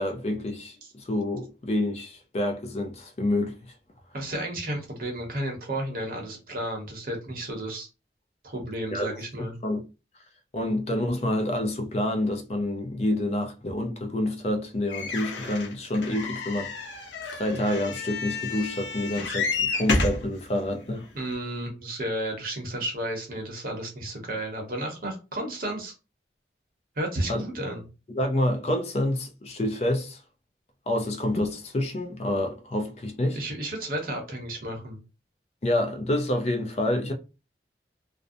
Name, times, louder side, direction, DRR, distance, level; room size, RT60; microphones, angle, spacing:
voice 1, 0.0-3.6 8.9-9.1 9.6-9.8 10.5-17.0 17.3-21.0 27.3-27.4 28.1-30.2 30.9-33.4 35.6-37.1, left 1 dB, 35° left, 0.4 m, -28 dB
voice 2, 4.1-7.9 8.4-9.6 21.1-25.9 27.0-27.9 33.3-35.0, right 1 dB, 55° right, 0.9 m, -32 dB
sound 1, 14.9-20.3 21.0-21.1 21.3-21.4, left 3 dB, 85° left, 0.7 m, -30 dB
2.5 x 2.1 x 2.6 m
head